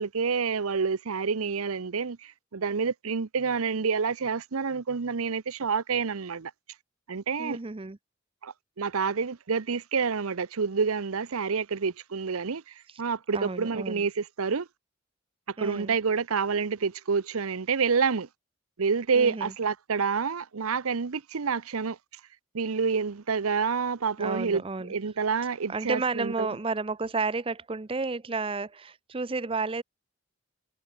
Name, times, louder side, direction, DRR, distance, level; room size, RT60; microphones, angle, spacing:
voice 1, 0.0-6.5 7.1-7.6 8.4-14.7 15.6-18.3 18.8-22.0 22.5-24.6 24.9-26.6, right 5 dB, 90° right, 0.7 m, -28 dB
voice 2, 7.4-8.0 13.3-14.1 15.6-16.0 19.1-19.5 24.2-24.9 25.7-29.8, right 3 dB, 25° right, 0.5 m, -31 dB
head